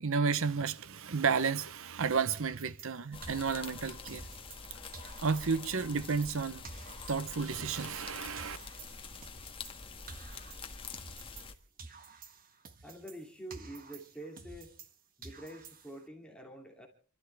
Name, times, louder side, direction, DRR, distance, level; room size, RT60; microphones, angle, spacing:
voice 1, 0.0-4.2 5.2-6.6 7.1-8.6, right 5 dB, 60° right, 0.8 m, -32 dB
sound 1, 2.4-4.7 4.9-8.1 8.4-11.5 11.8-14.9 15.2-16.1, right 4 dB, 40° right, 1.6 m, -51 dB
sound 2, 3.1-11.5, left 4 dB, 25° left, 1.7 m, -46 dB
voice 2, 12.8-14.7 15.2-16.9, right 1 dB, 5° left, 2.6 m, -47 dB
29.0 x 13.0 x 3.4 m
head